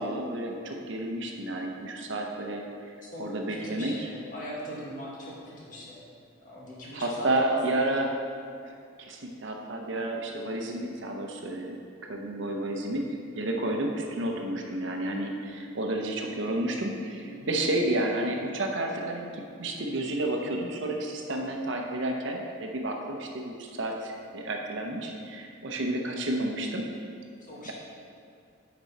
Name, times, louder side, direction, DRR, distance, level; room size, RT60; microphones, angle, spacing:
voice 1, 0.0-3.9 6.9-8.1 8.6-11.8 12.0-26.9 27.6-27.7, right 1 dB, 60° right, 1 dB, 0.8 m, -31 dB
voice 2, 3.0-6.0 6.4-7.9 17.2-17.6 27.4-27.7, equal, 40° left, -5 dB, 1.7 m, -40 dB
9.2 x 5.2 x 4.2 m, 2.4 s
head